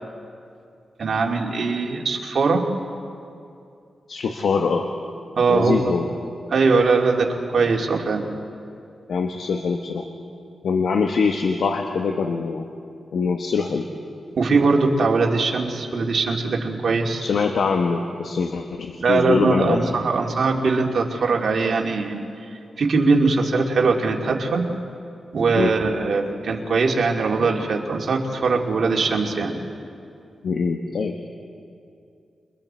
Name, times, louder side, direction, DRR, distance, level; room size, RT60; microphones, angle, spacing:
voice 1, 1.0-2.7 5.4-6.0 6.5-8.2 14.4-17.2 19.0-22.2 22.8-24.6 25.3-29.6, right 4 dB, 65° right, 0 dB, 2.7 m, -21 dB
voice 2, 4.1-4.9 5.5-6.1 9.1-10.0 10.6-12.6 13.1-13.8 17.2-19.8 25.5-25.7 30.4-31.2, left 5 dB, 80° left, 4 dB, 1.2 m, -23 dB
29.5 x 23.5 x 4.5 m, 2.5 s
cardioid pair, 75°, 0 cm